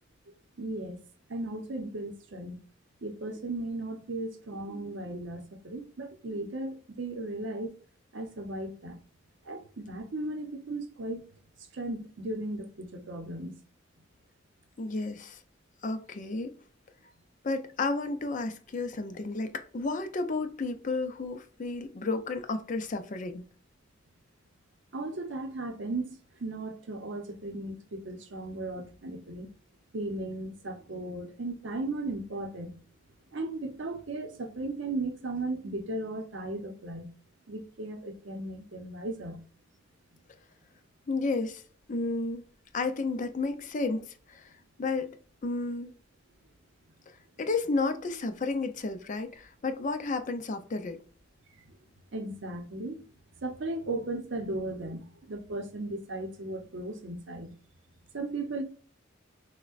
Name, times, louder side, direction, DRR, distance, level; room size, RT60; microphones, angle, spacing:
voice 1, 0.3-1.0 1.3-2.6 3.0-7.8 8.1-9.0 9.5-11.3 11.7-13.6 24.9-29.5 29.9-32.8 33.3-37.1 37.5-39.4 52.1-53.0 53.4-57.5 58.1-58.6, right 2 dB, 70° right, 0.7 m, -36 dB
voice 2, 14.8-15.4 15.8-16.6 17.4-23.5 41.1-41.6 41.9-42.4 42.7-44.5 44.8-45.1 45.4-45.9 47.4-51.0, left 3 dB, 40° left, 0.5 m, -32 dB
6.2 x 2.1 x 2.4 m
head